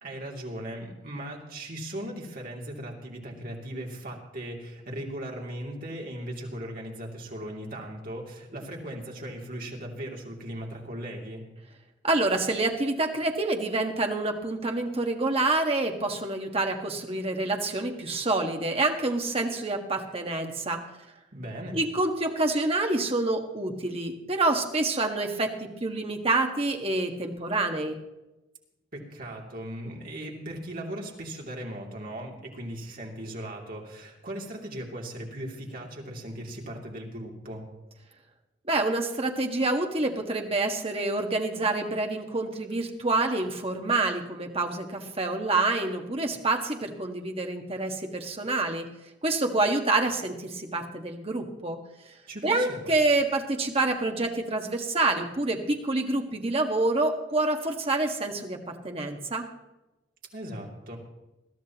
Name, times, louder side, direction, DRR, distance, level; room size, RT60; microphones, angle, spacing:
voice 1, 0.0-11.4 21.3-21.8 28.9-37.6 52.3-52.9 60.3-61.0, right 1 dB, 50° right, -1 dB, 2.9 m, -38 dB
voice 2, 12.0-20.8 21.7-28.0 38.7-48.9 49.2-51.8 52.4-59.5, right 2 dB, 30° right, 3 dB, 1.6 m, -27 dB
21.5 x 14.0 x 3.0 m, 1.0 s
head